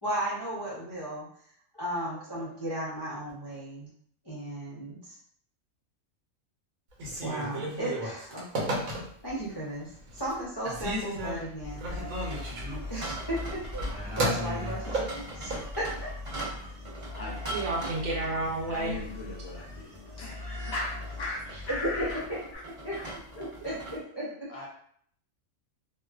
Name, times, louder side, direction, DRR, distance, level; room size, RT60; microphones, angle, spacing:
voice 1, 0.0-1.3 1.7-3.9 4.2-5.2 7.2-8.7 9.2-12.1 12.9-13.4 13.7-13.8 14.2-15.9 21.7-22.1 22.8-23.0 23.4-24.5, right 1 dB, 40° left, -8 dB, 0.3 m, -35 dB
Telephone, 6.9-9.4 9.9-10.4 10.6-15.7, right 1 dB, 90° right, 1.1 m, -33 dB
sound 1, 11.6-22.6, left 2 dB, 15° right, 1.0 m, -41 dB
sound 2, 11.6-24.0, right 2 dB, 40° right, 0.5 m, -43 dB
voice 2, 17.5-19.0, right 2 dB, 65° right, -2 dB, 0.9 m, -30 dB
voice 3, 18.7-19.9 20.2-22.2 22.5-22.6 23.0-23.1 24.2-24.7, left 2 dB, 65° left, -4 dB, 0.7 m, -38 dB
2.4 x 2.2 x 2.3 m, 0.62 s
omnidirectional pair, 1.4 m